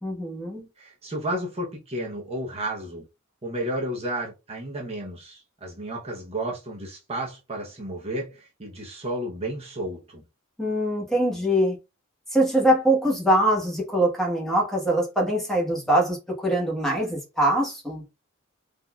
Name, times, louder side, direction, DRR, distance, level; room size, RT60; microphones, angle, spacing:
voice 1, 0.0-0.7 10.6-11.8 12.3-18.0, right 1 dB, ahead, 1.1 m, -23 dB
voice 2, 0.8-3.1 3.4-10.2, right 1 dB, 30° right, 0.8 m, -32 dB
3.8 x 2.7 x 2.3 m
head